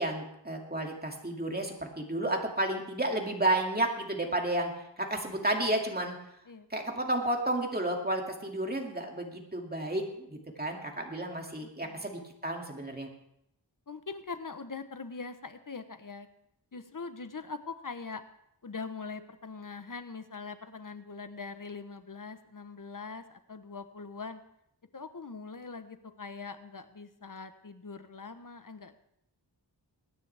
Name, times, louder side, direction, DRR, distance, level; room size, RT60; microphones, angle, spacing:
voice 1, 0.0-6.2 6.7-13.1, right 1 dB, 20° right, 1 dB, 2.4 m, -32 dB
voice 2, 11.6-12.0 13.9-16.3 16.7-18.2 18.6-24.4 24.9-29.0, left 4 dB, 50° left, 10 dB, 1.0 m, -42 dB
22.0 x 9.9 x 3.5 m, 0.77 s
wide cardioid pair, 60°, 42 cm